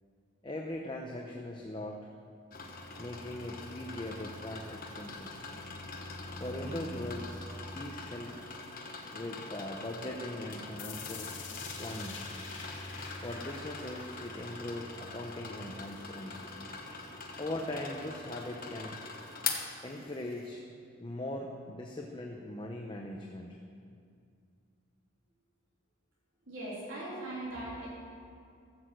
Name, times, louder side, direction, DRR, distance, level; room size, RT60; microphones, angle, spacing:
voice 1, 0.4-2.1 3.0-5.5 6.4-7.5 7.7-8.4 9.1-11.3 11.8-12.2 13.2-16.5 17.4-19.0 19.8-20.6 21.0-23.6, left 1 dB, 25° left, 1 dB, 0.8 m, -40 dB
sound 1, 2.5-20.5, left 4 dB, 45° left, 1.2 m, -43 dB
sound 2, 10.8-16.8, left 5 dB, 85° left, 2.1 m, -48 dB
voice 2, 26.5-27.9, right 1 dB, 70° right, -8 dB, 3.2 m, -39 dB
14.0 x 6.5 x 7.6 m, 2.4 s
head